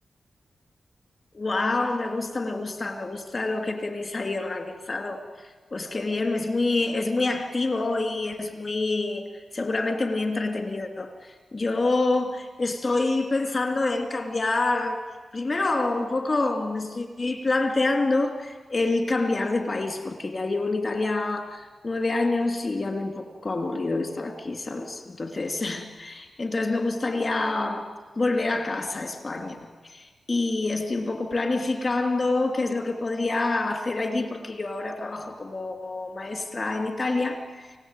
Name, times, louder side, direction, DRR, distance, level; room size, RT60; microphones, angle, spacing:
voice 1, 1.3-5.2 5.7-9.2 9.5-15.0 15.3-27.9 28.2-29.6 29.8-37.7, left 2 dB, 35° left, 5 dB, 2.8 m, -27 dB
29.0 x 16.5 x 9.1 m, 1.4 s
wide cardioid pair, 160°, 0 cm